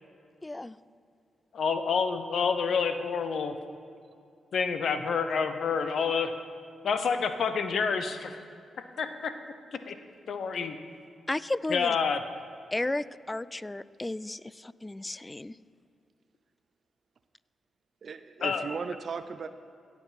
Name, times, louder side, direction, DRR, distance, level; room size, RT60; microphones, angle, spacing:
voice 1, 0.4-0.8 11.3-11.9 12.7-15.5, left 2 dB, 20° left, 18 dB, 0.3 m, -33 dB
voice 2, 1.5-3.5 4.5-6.3 6.8-8.4 9.0-9.3 9.9-10.0 10.3-10.8 11.7-12.2 18.4-18.6, left 5 dB, 70° left, 9 dB, 0.7 m, -28 dB
voice 3, 18.0-19.5, right 5 dB, 60° right, 11 dB, 0.4 m, -36 dB
16.5 x 6.0 x 4.1 m, 2.4 s
supercardioid pair, 50°, 0 cm